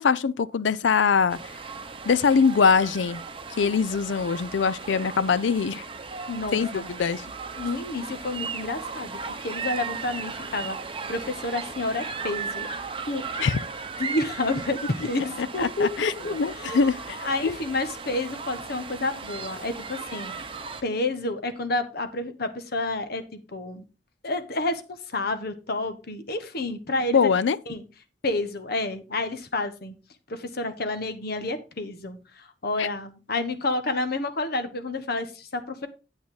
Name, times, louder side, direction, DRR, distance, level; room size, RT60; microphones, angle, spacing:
voice 1, 0.0-1.4 2.1-3.2 3.6-5.8 6.5-7.2 13.4-13.6 15.6-17.2 17.4-17.5 27.1-27.6 32.8-32.9, left 5 dB, 85° left, 0.5 m, -22 dB
sound 1, 1.3-20.8, right 5 dB, 30° right, 0.9 m, -36 dB
voice 2, 6.3-6.9 7.5-12.7 13.1-13.6 14.0-16.9 17.2-20.3 20.8-23.8 24.2-27.3 27.7-27.8 28.2-29.9 30.3-35.9, left 2 dB, 60° left, 1.3 m, -30 dB
9.4 x 8.0 x 3.9 m
head